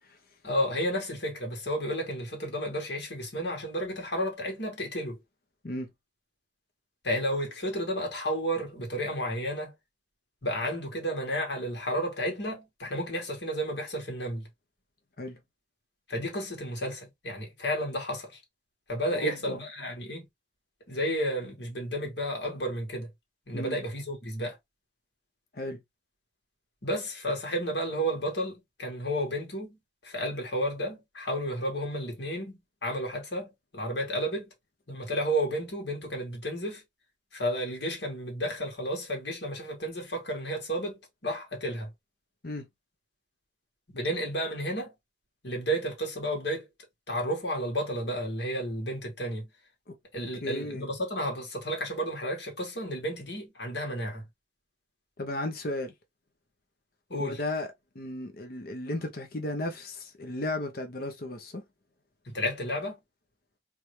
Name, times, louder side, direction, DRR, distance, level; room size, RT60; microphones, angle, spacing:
voice 1, 0.4-5.2 7.0-9.7 10.4-14.5 16.1-18.4 18.9-20.3 20.9-23.1 23.5-24.6 26.8-34.5 34.9-36.8 37.3-41.9 43.9-44.9 45.4-46.7 47.1-49.5 50.1-54.3 57.1-57.4 62.3-63.0, equal, 65° left, 2.0 m, -32 dB
voice 2, 19.1-19.6 23.5-23.8 25.5-25.8 42.4-42.7 49.9-50.0 50.4-50.9 55.2-55.9 57.2-61.6, left 1 dB, 50° left, 0.9 m, -34 dB
3.4 x 3.3 x 3.1 m
head